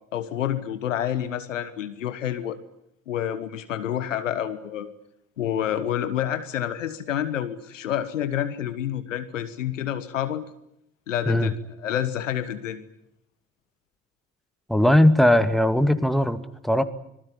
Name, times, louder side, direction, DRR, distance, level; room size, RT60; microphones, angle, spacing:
voice 1, 0.1-2.6 3.1-4.9 5.4-10.4 11.1-11.6 11.8-12.8, left 10 dB, 85° left, 12 dB, 1.4 m, -28 dB
voice 2, 14.7-16.4 16.6-16.8, left 1 dB, ahead, 9 dB, 2.4 m, -19 dB
26.0 x 20.0 x 9.8 m, 0.78 s
figure-of-eight pair, 45°, 37 cm